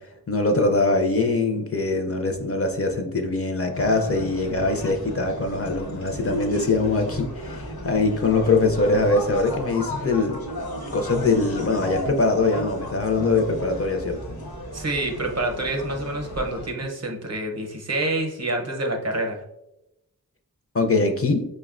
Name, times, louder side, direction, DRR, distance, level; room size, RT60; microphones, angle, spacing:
voice 1, 0.3-10.4 10.9-14.4 20.7-21.5, left 3 dB, 40° left, 4 dB, 0.4 m, -22 dB
sound 1, 3.7-16.7, equal, 80° left, 0.8 m, -34 dB
voice 2, 14.7-19.4, right 2 dB, 45° right, 2 dB, 0.6 m, -27 dB
5.2 x 2.1 x 2.3 m, 0.88 s
wide cardioid pair, 55°, 36 cm